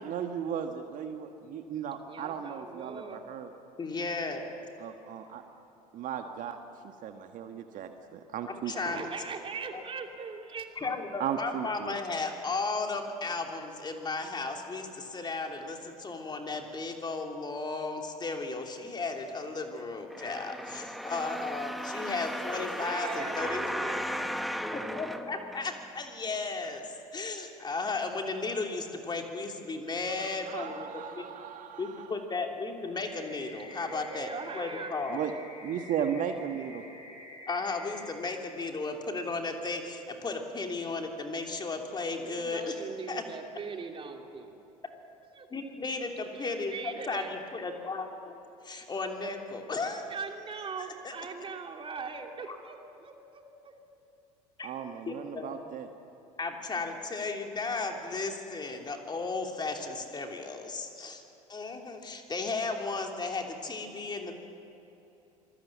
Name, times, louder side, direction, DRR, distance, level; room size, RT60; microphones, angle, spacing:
voice 1, 0.0-3.5 4.8-5.4 5.9-6.6 7.0-9.0 11.2-12.0 30.2-32.1 35.1-35.3 35.6-36.8 54.6-55.9, right 8 dB, 45° right, 6 dB, 1.5 m, -36 dB
voice 2, 2.1-3.2 8.7-10.7 22.5-24.1 33.7-34.9 42.2-44.6 45.3-45.5 46.3-47.3 50.1-53.8, right 5 dB, 30° right, 3 dB, 2.9 m, -41 dB
voice 3, 3.8-4.5 8.6-9.1 9.7-9.8 10.8-24.0 24.7-31.2 31.8-34.3 34.5-35.2 37.5-42.7 43.1-43.2 45.5-48.4 48.6-50.1 51.0-51.1 54.6-54.7 55.1-55.6 56.4-61.2 61.5-64.4, left 3 dB, 20° left, 3 dB, 3.1 m, -35 dB
sound 1, 20.1-26.0 26.6-26.7, equal, ahead, 1.3 m, -36 dB
sound 2, 33.0-38.0, left 1 dB, 80° left, 4.8 m, -48 dB
27.0 x 21.0 x 7.4 m, 3.0 s
figure-of-eight pair, 70°, 20 cm